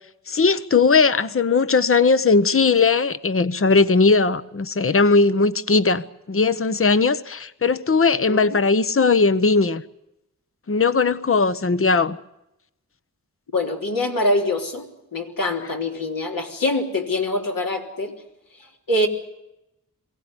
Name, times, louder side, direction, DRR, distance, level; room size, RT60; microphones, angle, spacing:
voice 1, 0.3-6.0 6.3-9.8 10.7-12.2, left 4 dB, 40° left, 0.9 m, -18 dB
voice 2, 8.3-8.6 13.5-14.9 15.1-18.1 18.6-19.1, left 1 dB, 70° left, 3.5 m, -24 dB
23.0 x 17.0 x 9.8 m
wide cardioid pair, 70°, 35 cm